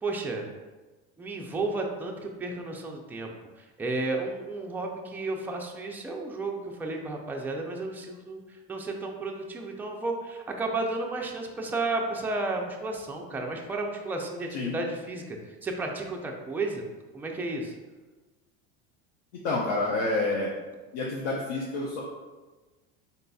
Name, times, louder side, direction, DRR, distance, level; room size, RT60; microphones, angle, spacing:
voice 1, 0.0-0.5 1.2-3.3 3.6-16.8 17.1-17.7, right 2 dB, 5° right, 1 dB, 0.3 m, -33 dB
voice 2, 19.4-20.5 20.9-22.0, left 2 dB, 85° left, -3 dB, 0.7 m, -28 dB
4.0 x 3.9 x 2.3 m, 1.2 s
supercardioid pair, 130°, 29 cm